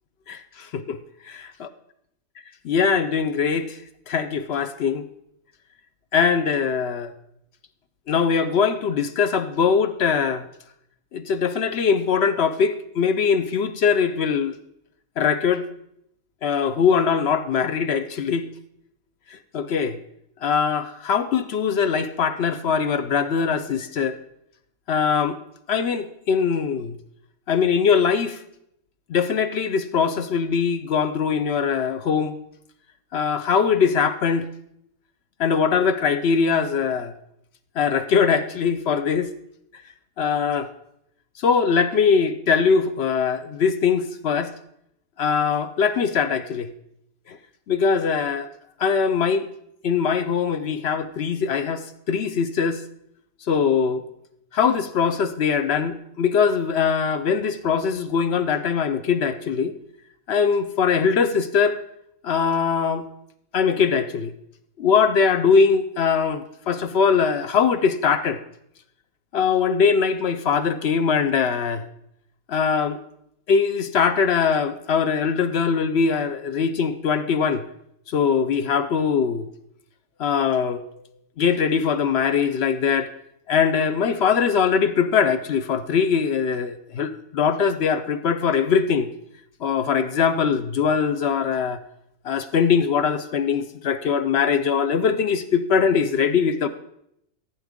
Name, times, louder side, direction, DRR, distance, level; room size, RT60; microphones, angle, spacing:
voice 1, 0.3-1.0 2.6-3.8 4.1-5.1 6.1-7.1 8.1-10.4 11.1-14.6 15.2-15.7 16.4-18.5 19.5-20.0 20.4-24.2 24.9-25.4 25.7-27.0 27.5-28.4 29.1-32.3 33.1-34.5 35.4-37.1 37.8-39.3 40.2-40.7 41.4-44.5 45.2-46.7 47.3-47.4 47.7-48.5 48.8-49.5 49.8-52.8 53.5-54.0 54.5-59.8 60.3-61.8 62.2-63.1 63.5-64.3 64.8-68.4 69.3-71.8 72.5-73.0 73.5-77.6 78.1-79.5 80.2-80.8 81.4-83.1 83.5-89.1 89.6-91.8 92.2-96.7, left 6 dB, 60° left, 11 dB, 0.7 m, -21 dB
15.0 x 8.8 x 3.7 m, 0.77 s
omnidirectional pair, 1.6 m